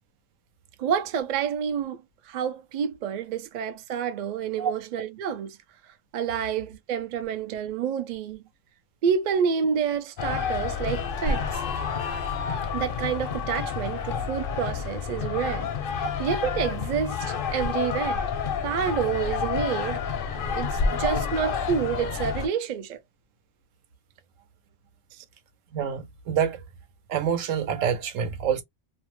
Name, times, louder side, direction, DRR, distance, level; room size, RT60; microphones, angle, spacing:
voice 1, 0.8-5.6 6.1-8.4 9.0-11.7 12.7-18.3 18.6-20.0 20.5-23.0 25.1-25.2, right 7 dB, 65° right, 0.4 m, -29 dB
sound 1, 10.2-22.5, left 6 dB, 60° left, 0.6 m, -29 dB
voice 2, 25.7-26.6 27.1-28.6, right 8 dB, 85° right, 1.1 m, -27 dB
2.6 x 2.1 x 3.0 m
omnidirectional pair, 1.3 m